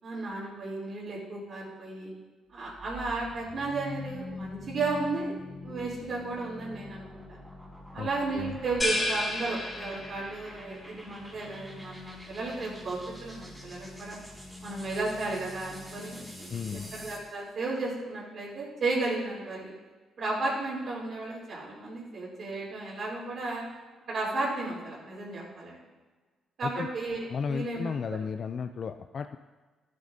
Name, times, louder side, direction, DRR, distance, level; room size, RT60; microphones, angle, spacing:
voice 1, 0.0-2.1 2.5-5.3 5.6-7.4 7.9-14.1 14.6-19.7 20.2-23.6 24.1-25.7 26.6-28.0, right 3 dB, 55° right, -11 dB, 3.4 m, -34 dB
sound 1, 2.6-17.3, left 2 dB, 10° right, 3.1 m, -45 dB
sound 2, 8.8-10.5, left 1 dB, 20° left, 3.2 m, -31 dB
voice 2, 16.5-16.9 26.6-26.9 27.3-29.4, left 6 dB, 50° left, 8 dB, 0.4 m, -34 dB
13.0 x 8.6 x 2.8 m, 1.3 s
cardioid pair, 90°, 0 cm